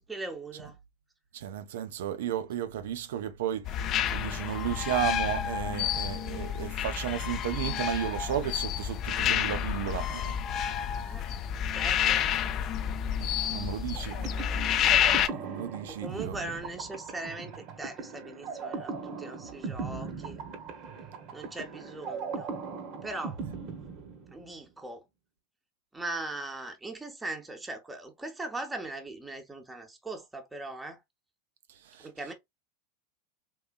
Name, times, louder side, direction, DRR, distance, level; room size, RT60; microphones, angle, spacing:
voice 1, 0.1-0.8 6.8-6.9 11.0-12.3 15.9-20.4 21.3-22.6 23.0-23.4 24.3-25.0 25.9-31.0 32.0-32.3, right 2 dB, 10° right, 0.9 m, -40 dB
voice 2, 1.3-3.8 4.1-10.4 13.2-14.3 15.3-16.4 31.8-32.1, right 10 dB, 75° right, 0.5 m, -34 dB
sound 1, 3.6-15.3, left 9 dB, 40° left, 0.4 m, -29 dB
sound 2, 13.9-24.6, right 5 dB, 50° right, 1.0 m, -39 dB
3.8 x 2.7 x 2.4 m
hypercardioid pair, 100°, 0 cm